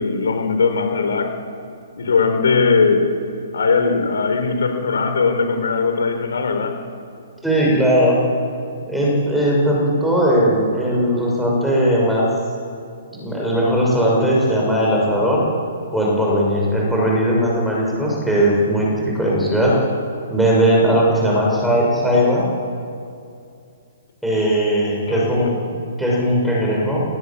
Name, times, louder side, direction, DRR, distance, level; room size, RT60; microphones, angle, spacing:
voice 1, 0.0-1.3 2.0-3.1 3.5-6.8 21.3-21.5 25.1-25.5, left 4 dB, 85° left, 7 dB, 4.6 m, -19 dB
voice 2, 7.4-8.2 8.9-12.3 13.1-15.4 15.9-19.8 20.3-22.5 24.2-25.5 26.0-27.0, equal, ahead, -4 dB, 6.4 m, -18 dB
27.0 x 19.0 x 8.8 m, 2.5 s
hypercardioid pair, 165°, 0 cm